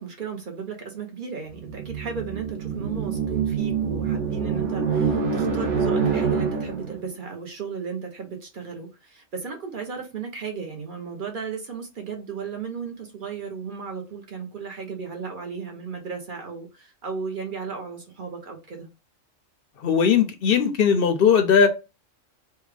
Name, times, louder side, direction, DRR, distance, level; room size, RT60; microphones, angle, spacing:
voice 1, 0.0-18.9, right 6 dB, 50° right, 0.7 m, -35 dB
sound 1, 1.5-7.0, right 6 dB, 70° right, 1.1 m, -26 dB
voice 2, 19.8-21.7, left 7 dB, 60° left, 0.6 m, -18 dB
3.3 x 2.2 x 3.2 m
omnidirectional pair, 1.3 m